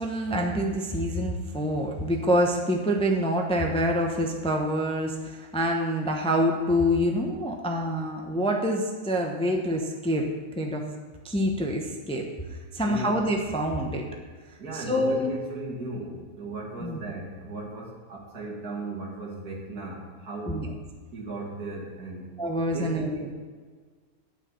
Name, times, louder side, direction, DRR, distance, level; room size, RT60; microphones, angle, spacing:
voice 1, 0.0-10.3 10.6-10.8 11.2-12.2 12.7-14.0 14.7-15.3 16.8-17.0 20.5-20.7 22.4-23.1, equal, 5° left, 1 dB, 0.7 m, -26 dB
voice 2, 12.8-13.2 14.6-20.7 21.1-22.4 22.7-23.3, right 2 dB, 80° right, -3 dB, 2.6 m, -36 dB
10.0 x 5.8 x 6.9 m, 1.5 s
omnidirectional pair, 1.6 m